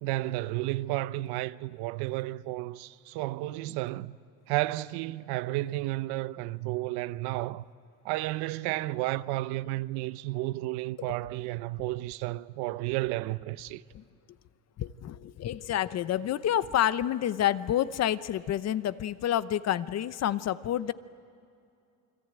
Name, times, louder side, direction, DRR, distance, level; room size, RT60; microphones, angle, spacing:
voice 1, 0.0-4.2 4.5-7.6 8.0-13.8, right 18 dB, 75° right, 0.8 m, -32 dB
voice 2, 14.8-20.9, left 11 dB, 40° left, 0.8 m, -28 dB
29.0 x 22.0 x 9.0 m
cardioid pair, 115°, 39 cm